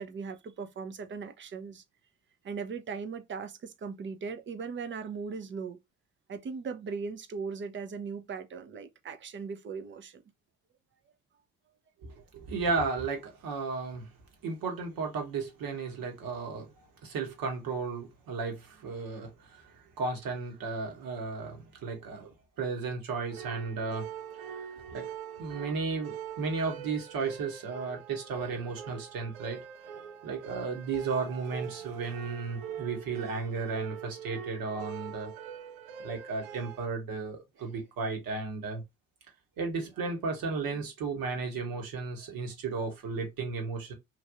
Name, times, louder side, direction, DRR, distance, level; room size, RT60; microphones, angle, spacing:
voice 1, 0.0-1.8 2.4-5.8 6.3-10.2, right 5 dB, 30° right, 0.6 m, -38 dB
voice 2, 12.0-14.1 14.4-16.7 17.0-24.1 24.9-25.1 25.4-29.6 30.2-35.3 36.0-38.8 39.6-43.9, right 4 dB, 55° right, 1.3 m, -34 dB
sound 1, 23.3-36.9, right 8 dB, 80° right, 0.5 m, -43 dB
3.2 x 2.5 x 2.5 m
hypercardioid pair, 50°, 41 cm